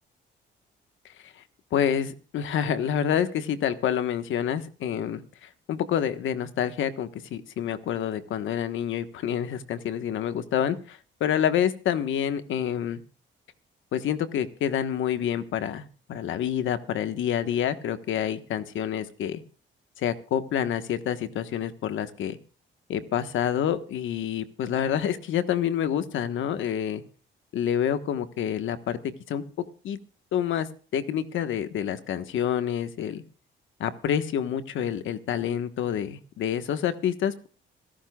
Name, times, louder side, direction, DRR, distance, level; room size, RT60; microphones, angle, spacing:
voice 1, 1.7-13.0 13.9-19.4 20.0-22.4 22.9-27.0 27.5-29.0 29.3-29.4 29.8-30.0 30.3-33.2 33.8-37.5, left 9 dB, 75° left, 10 dB, 1.3 m, -28 dB
26.0 x 13.0 x 2.4 m, 0.38 s
cardioid pair, 90°, 20 cm